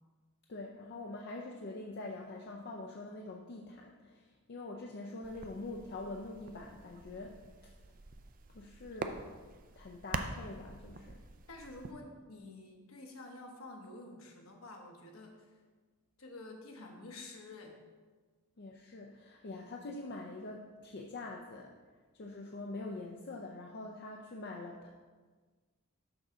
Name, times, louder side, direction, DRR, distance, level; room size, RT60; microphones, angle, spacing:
voice 1, 0.5-7.4 8.5-9.3 9.8-11.2 18.6-21.7 22.1-24.9, left 2 dB, 50° left, 0 dB, 0.5 m, -44 dB
sound 1, 5.2-11.9, right 4 dB, 40° right, 0.4 m, -45 dB
voice 2, 11.5-15.5 16.2-17.8, left 2 dB, 65° left, 1 dB, 1.1 m, -49 dB
6.2 x 3.9 x 6.1 m, 1.4 s
head